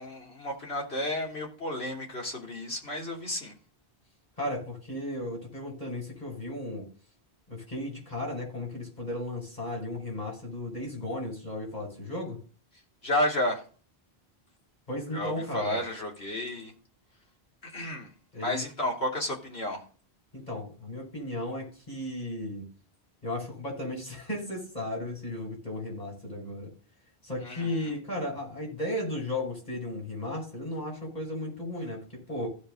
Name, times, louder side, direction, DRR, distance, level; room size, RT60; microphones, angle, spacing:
voice 1, 0.0-3.5 13.0-13.6 15.1-16.7 17.6-18.1 18.4-19.8 27.4-27.9, left 1 dB, 80° left, -1 dB, 3.4 m, -32 dB
voice 2, 4.4-6.9 7.5-12.4 14.9-15.8 18.3-18.6 20.3-22.7 23.2-26.7 27.2-32.5, left 1 dB, 40° left, -1 dB, 5.5 m, -35 dB
16.0 x 5.4 x 3.8 m, 0.40 s
omnidirectional pair, 1.1 m